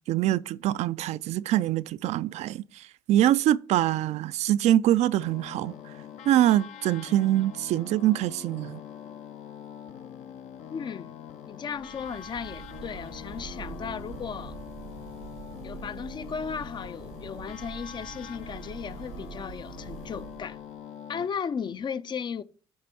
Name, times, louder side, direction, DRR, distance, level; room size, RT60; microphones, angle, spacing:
voice 1, 0.1-5.7 6.3-8.8, right 13 dB, 65° right, 0.4 m, -24 dB
sound 1, 5.2-21.3, left 9 dB, 70° left, 0.7 m, -44 dB
voice 2, 10.7-11.2 11.5-14.6 15.6-20.6 21.1-22.4, left 6 dB, 40° left, 0.5 m, -35 dB
sound 2, 11.6-20.8, right 8 dB, 85° right, 1.2 m, -45 dB
8.5 x 3.4 x 5.9 m
supercardioid pair, 80°, 12 cm